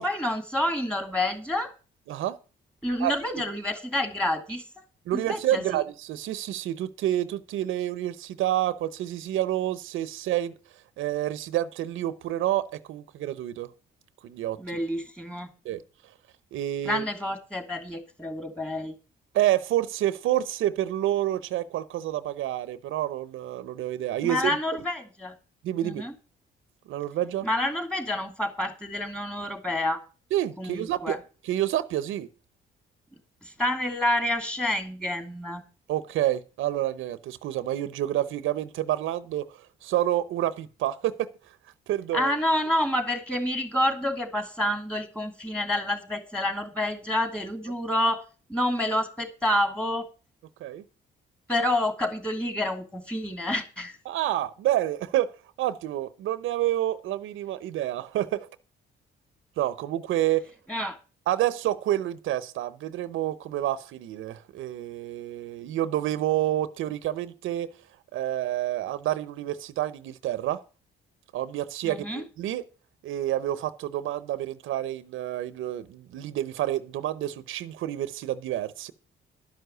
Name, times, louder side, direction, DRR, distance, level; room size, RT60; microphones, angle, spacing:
voice 1, 0.0-1.7 2.8-4.6 5.1-5.8 14.6-15.5 16.8-18.9 24.2-25.3 25.8-26.1 27.4-30.0 30.6-31.2 33.4-35.6 42.1-50.1 51.5-54.0 60.7-61.0 71.8-72.2, left 1 dB, 5° left, 2.8 m, -28 dB
voice 2, 5.1-10.5 11.0-13.7 14.2-14.8 15.6-15.8 16.5-17.0 19.3-24.6 25.6-26.0 26.9-27.5 30.3-32.3 35.9-39.5 39.8-41.3 41.9-42.3 50.6-50.8 54.1-55.3 55.6-58.5 59.6-60.5 61.3-67.7 68.1-70.6 71.3-72.6 73.0-78.9, right 13 dB, 85° right, 0.7 m, -28 dB
12.0 x 5.6 x 8.0 m
cardioid pair, 90°, 20 cm